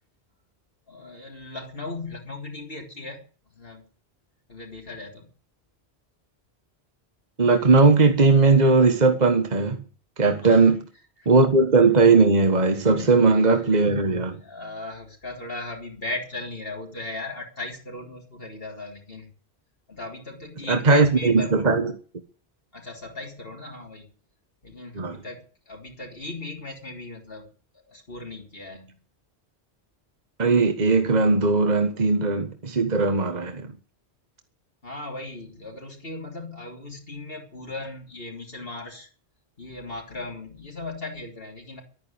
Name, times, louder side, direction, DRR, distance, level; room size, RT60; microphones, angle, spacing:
voice 1, 0.9-3.2 3.6-3.8 4.5-5.3 10.4-10.7 12.8-13.7 14.4-19.3 19.9-21.8 22.7-24.1 24.6-27.5 27.9-29.0 34.8-39.1 39.6-41.8, left 2 dB, 60° left, 3.4 m, -37 dB
voice 2, 7.4-9.8 10.2-10.8 11.2-14.4 20.7-21.9 24.9-25.2 30.4-33.7, right 3 dB, 40° right, 1.5 m, -18 dB
12.5 x 9.6 x 8.6 m
omnidirectional pair, 1.1 m